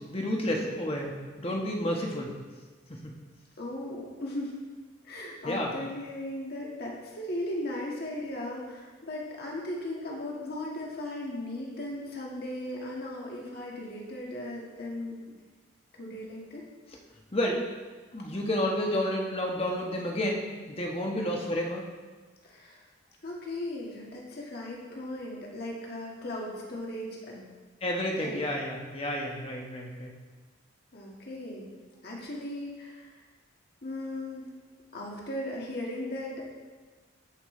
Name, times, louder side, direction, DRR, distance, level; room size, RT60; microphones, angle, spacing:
voice 1, 0.0-2.3 2.9-3.2 5.4-5.7 17.3-17.6 18.1-20.4 20.7-21.9 27.8-30.1, left 1 dB, 30° left, 0 dB, 1.1 m, -30 dB
voice 2, 3.6-4.6 5.0-15.1 15.9-16.6 22.4-22.8 23.2-27.4 28.1-28.4 30.9-31.7 32.0-33.2 33.8-34.5 34.9-36.4, left 1 dB, 50° left, -2 dB, 1.6 m, -37 dB
14.0 x 5.4 x 3.2 m, 1.4 s
head